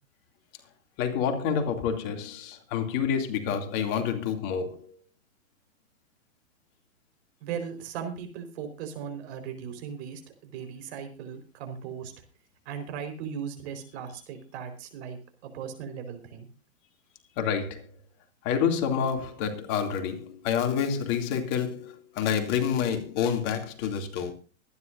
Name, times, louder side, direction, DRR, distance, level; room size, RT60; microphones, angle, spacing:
voice 1, 1.0-5.0 17.4-17.9 18.4-24.3, left 7 dB, 40° left, 2.8 m, -28 dB
voice 2, 7.4-12.1 12.7-15.2 15.4-16.5, right 7 dB, 55° right, 4.6 m, -38 dB
24.0 x 11.0 x 2.6 m
hypercardioid pair, 125°, 40 cm